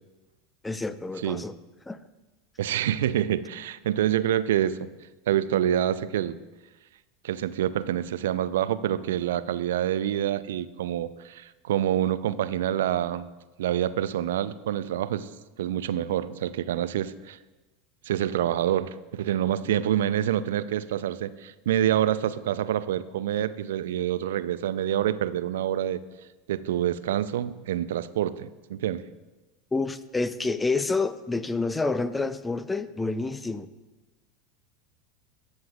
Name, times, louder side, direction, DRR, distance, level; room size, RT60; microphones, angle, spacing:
voice 1, 0.6-1.5 1.9-2.0 29.7-33.7, left 3 dB, 10° left, 14 dB, 0.6 m, -28 dB
voice 2, 2.6-4.9 5.3-6.4 7.2-13.3 13.6-15.3 15.6-17.4 18.0-26.0 26.5-29.0, right 11 dB, 70° right, 15 dB, 0.4 m, -27 dB
20.0 x 7.9 x 2.4 m, 1.1 s
figure-of-eight pair, 80°, 0 cm